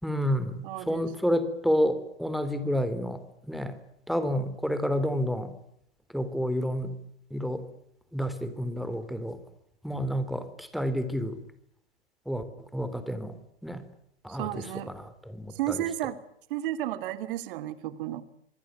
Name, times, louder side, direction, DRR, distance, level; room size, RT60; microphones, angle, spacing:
voice 1, 0.0-3.2 3.5-3.8 4.1-5.5 6.1-6.9 7.3-7.6 8.1-9.4 9.8-11.4 12.2-12.4 12.7-13.4 13.6-13.8 14.2-15.8, equal, ahead, 11 dB, 3.4 m, -29 dB
voice 2, 0.6-1.1 1.4-1.5 14.3-14.9 15.5-16.2 16.5-18.2, right 13 dB, 50° right, 12 dB, 2.7 m, -33 dB
26.0 x 22.0 x 9.5 m, 0.74 s
figure-of-eight pair, 105°, 34 cm